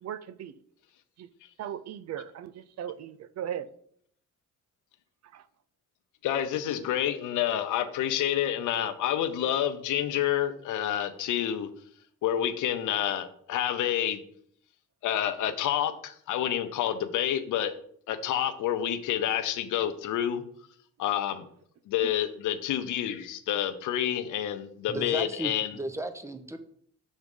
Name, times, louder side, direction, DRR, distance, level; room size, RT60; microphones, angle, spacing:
voice 1, 0.0-0.5 1.2-1.3 1.6-3.7 5.3-5.4, right 10 dB, 60° right, 0.5 m, -37 dB
voice 2, 6.2-11.7 12.2-14.2 15.0-17.7 18.1-20.4 21.0-21.5 21.9-25.8, left 10 dB, 80° left, 0.8 m, -28 dB
voice 3, 24.9-26.6, right 1 dB, 10° right, 0.8 m, -35 dB
6.3 x 3.6 x 5.4 m
cardioid pair, 90°, 30 cm